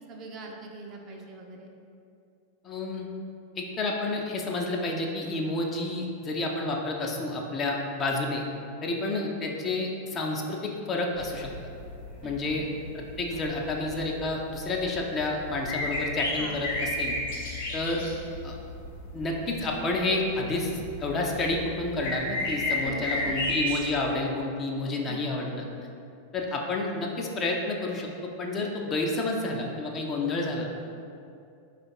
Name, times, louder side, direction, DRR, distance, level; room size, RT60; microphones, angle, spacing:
voice 1, 0.1-1.7 12.2-12.7 16.4-16.7 22.8-23.5 25.1-25.2, right 3 dB, 35° right, 1 dB, 0.5 m, -42 dB
voice 2, 2.6-3.1 3.6-8.4 8.8-11.5 12.2-12.7 12.9-17.2 17.7-18.0 18.4-18.6 19.1-20.7 21.0-25.6 26.3-30.7, left 2 dB, 25° left, 0 dB, 0.5 m, -30 dB
sound 1, 11.1-23.9, left 1 dB, 55° left, 0.9 m, -34 dB
4.2 x 2.5 x 4.6 m, 2.6 s
figure-of-eight pair, 90°, 0 cm